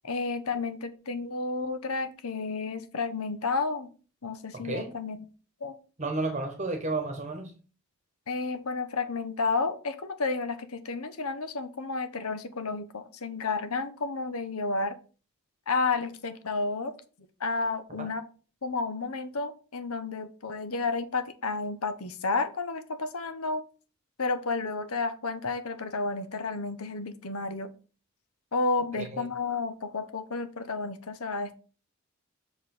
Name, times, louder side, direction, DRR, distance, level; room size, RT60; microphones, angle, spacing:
voice 1, 0.0-3.9 4.2-5.2 5.6-5.7 8.3-15.0 15.7-16.9 17.4-18.2 18.6-23.6 24.2-27.7 28.5-31.6, left 3 dB, 85° left, 10 dB, 1.0 m, -31 dB
voice 2, 4.6-5.0 6.0-7.5 18.0-18.1 29.0-29.3, right 3 dB, 30° right, 5 dB, 1.2 m, -32 dB
6.4 x 5.0 x 5.4 m, 0.37 s
head